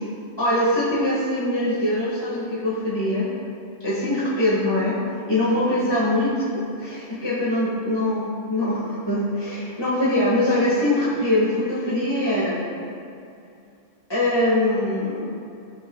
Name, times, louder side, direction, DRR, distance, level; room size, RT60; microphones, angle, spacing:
voice 1, 0.4-3.3 3.8-5.0 5.3-6.5 6.8-12.6 14.1-15.3, left 1 dB, 20° left, -8 dB, 1.9 m, -22 dB
19.0 x 6.4 x 2.4 m, 2.5 s
omnidirectional pair, 1.3 m